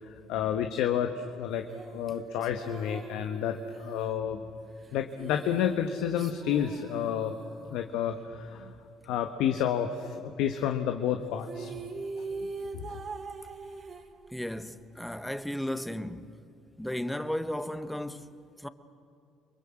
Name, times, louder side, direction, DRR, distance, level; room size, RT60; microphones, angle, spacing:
voice 1, 0.1-1.6 1.9-4.4 4.9-7.3 7.7-8.7 9.0-11.7 12.7-13.0, left 9 dB, 75° left, 1.3 m, -30 dB
sound 1, 1.7-7.8 11.1-11.2 11.4-14.6, right 4 dB, 45° right, 2.8 m, -42 dB
voice 2, 14.3-16.3 16.8-18.7, left 1 dB, 5° left, 1.4 m, -35 dB
29.5 x 23.0 x 7.7 m
hypercardioid pair, 65°, 0 cm